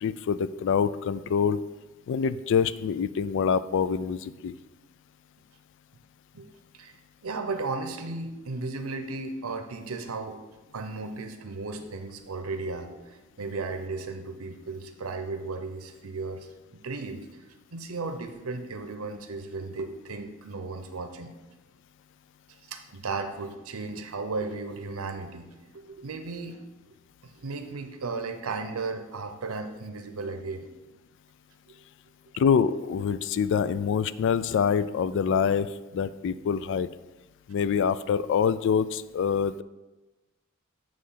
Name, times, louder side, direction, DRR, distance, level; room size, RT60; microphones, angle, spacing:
voice 1, 0.0-1.6 2.1-4.5 32.4-36.9 37.5-39.6, left 6 dB, 60° left, 15 dB, 0.3 m, -25 dB
voice 2, 7.2-10.4 10.7-17.3 17.7-21.3 22.7-26.6 27.2-30.7 31.7-31.8, right 3 dB, 85° right, 7 dB, 0.7 m, -35 dB
8.4 x 3.1 x 5.6 m, 1.1 s
head